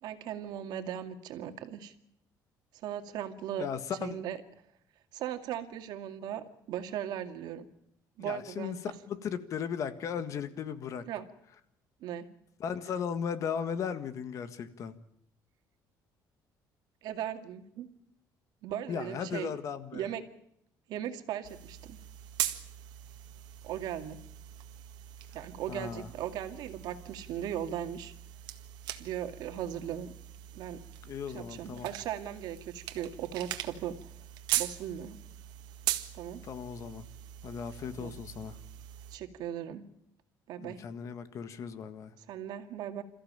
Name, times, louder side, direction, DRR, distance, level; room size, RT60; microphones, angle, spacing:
voice 1, 0.0-1.9 2.8-3.7 4.0-4.4 5.1-7.7 8.2-8.9 11.1-11.3 12.0-12.3 17.0-17.9 18.6-19.5 19.9-20.2 20.9-22.0 23.6-24.2 25.3-28.1 29.0-30.1 30.5-30.8 31.3-34.0 34.6-35.2 36.1-36.4 37.9-38.1 39.1-39.9 40.5-40.8 42.2-43.0, right 10 dB, 75° right, 2.2 m, -38 dB
voice 2, 3.6-4.2 8.2-11.0 12.6-15.0 18.9-20.1 25.7-26.1 31.0-31.9 36.4-37.0 37.4-38.6 40.6-42.1, left 7 dB, 45° left, 1.6 m, -36 dB
sound 1, 21.4-39.2, right 13 dB, 90° right, 1.8 m, -40 dB
27.5 x 14.5 x 8.9 m
cardioid pair, 160°, 7 cm